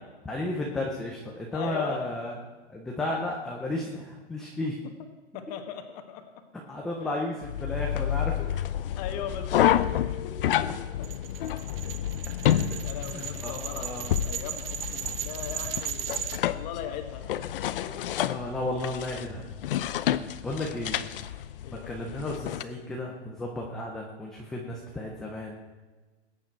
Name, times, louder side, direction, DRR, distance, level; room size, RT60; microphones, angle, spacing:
voice 1, 0.3-2.4 2.7-4.8 6.7-8.7 12.4-12.8 13.1-14.1 18.2-19.5 20.4-21.0 21.7-25.6, left 2 dB, ahead, -2 dB, 0.4 m, -33 dB
voice 2, 1.5-2.0 5.3-6.2 7.0-7.1 9.0-9.7 10.1-10.5 11.0-11.1 12.3-12.4 12.8-17.3 17.7-18.1 20.5-21.1 21.6-21.9, left 9 dB, 35° left, 6 dB, 1.5 m, -39 dB
sound 1, 7.4-22.6, left 11 dB, 55° left, 0.7 m, -30 dB
sound 2, 11.0-16.4, right 10 dB, 55° right, 0.9 m, -36 dB
21.0 x 8.7 x 4.5 m, 1.3 s
hypercardioid pair, 150°, 34 cm